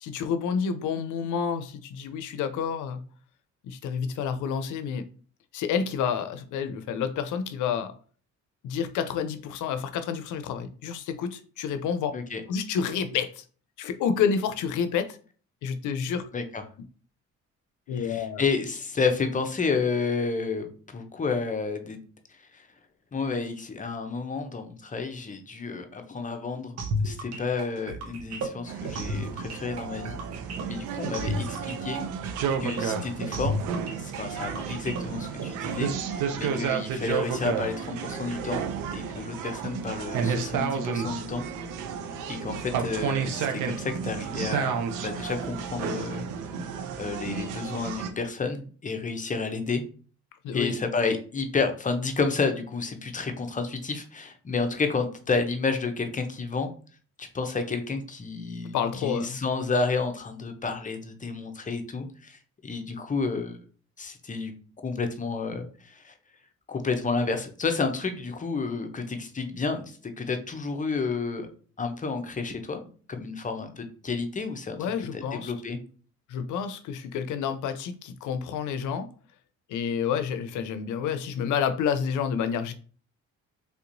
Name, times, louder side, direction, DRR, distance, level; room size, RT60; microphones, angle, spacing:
voice 1, 0.0-3.0 3.6-5.0 5.5-7.9 8.6-12.1 12.5-13.4 13.8-15.2 15.6-16.2 17.9-18.4 50.4-50.7 58.7-59.4 74.8-75.5 76.3-79.1 79.7-82.7, left 7 dB, 80° left, 10 dB, 0.5 m, -29 dB
voice 2, 17.9-22.0 22.5-22.7 23.1-30.2 30.7-32.1 32.6-33.6 34.0-35.9 36.3-38.6 38.9-41.4 42.3-46.3 47.0-49.8 50.5-56.7 57.2-63.6 64.0-64.5 64.8-66.1 66.7-71.5 71.8-74.9 75.1-75.8, left 4 dB, 25° left, 6 dB, 0.6 m, -30 dB
sound 1, 26.8-35.5, equal, 60° right, 0.8 m, -33 dB
sound 2, 28.7-48.1, right 7 dB, 85° right, 0.6 m, -32 dB
3.4 x 2.8 x 2.6 m, 0.40 s
cardioid pair, 90°, 30 cm